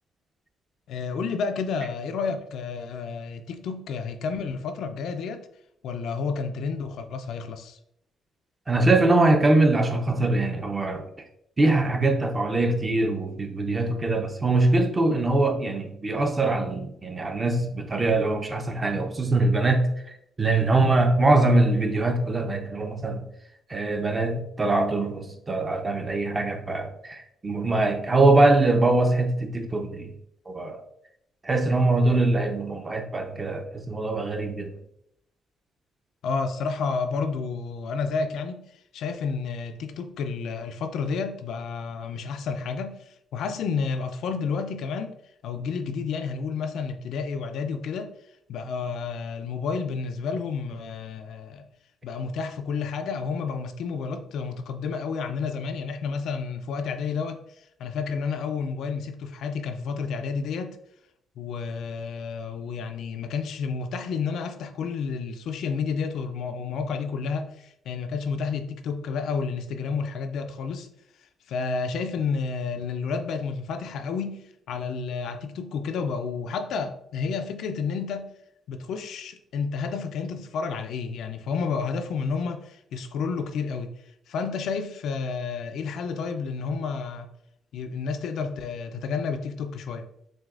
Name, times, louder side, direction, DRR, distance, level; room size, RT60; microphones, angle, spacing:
voice 1, 0.9-5.5 5.8-7.8 36.2-38.6 38.9-45.1 45.4-48.1 48.5-51.6 52.0-57.4 57.8-60.8 61.4-70.9 71.5-78.3 78.7-83.9 84.3-87.3 87.7-90.0, left 5 dB, 75° left, 0.4 m, -30 dB
voice 2, 8.7-11.1 11.6-23.3 23.7-30.1 30.5-30.8 31.4-34.7, right 2 dB, 25° right, 0.6 m, -23 dB
6.1 x 2.2 x 2.4 m
cardioid pair, 90°, 0 cm